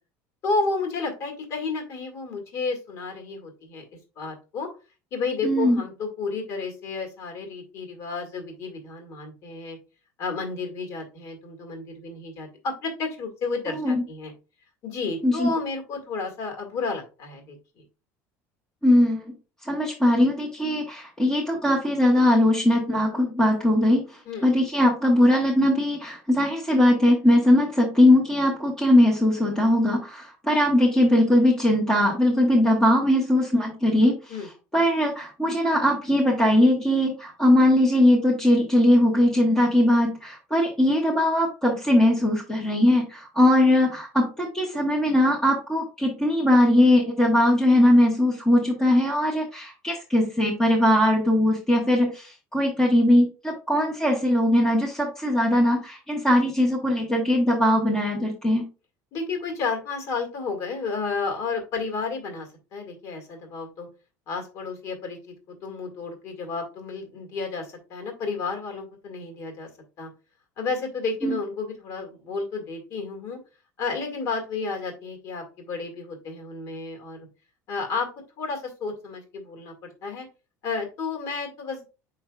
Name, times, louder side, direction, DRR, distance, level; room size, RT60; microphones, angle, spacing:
voice 1, 0.4-3.8 4.2-4.7 5.1-9.8 10.2-14.3 14.8-17.6 24.3-24.5 34.3-34.5 59.1-63.9 64.3-65.2 65.5-69.7 70.0-70.1 70.6-73.4 73.8-77.3 77.7-78.1 78.4-80.3 80.6-81.8, left 4 dB, 45° left, 4 dB, 2.0 m, -31 dB
voice 2, 5.4-5.8 13.7-14.0 15.2-15.5 18.8-19.3 19.6-24.0 24.4-34.1 34.7-58.7 71.2-71.4, left 1 dB, 10° left, -3 dB, 1.2 m, -20 dB
7.3 x 5.7 x 2.3 m, 0.32 s
cardioid pair, 155°, 7 cm